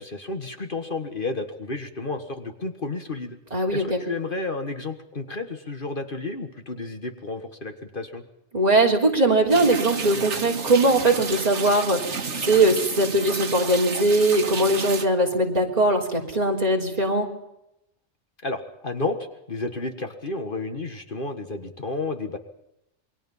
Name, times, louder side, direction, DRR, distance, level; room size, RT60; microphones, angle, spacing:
voice 1, 0.0-3.4 3.7-8.2 18.4-19.2 19.5-22.4, left 3 dB, 45° left, 6 dB, 1.8 m, -31 dB
voice 2, 3.5-4.0 8.5-17.3, right 2 dB, 35° right, 0 dB, 3.7 m, -21 dB
sound 1, 9.5-15.1, right 5 dB, 75° right, 1.7 m, -31 dB
28.0 x 21.5 x 5.6 m, 0.82 s
omnidirectional pair, 1.2 m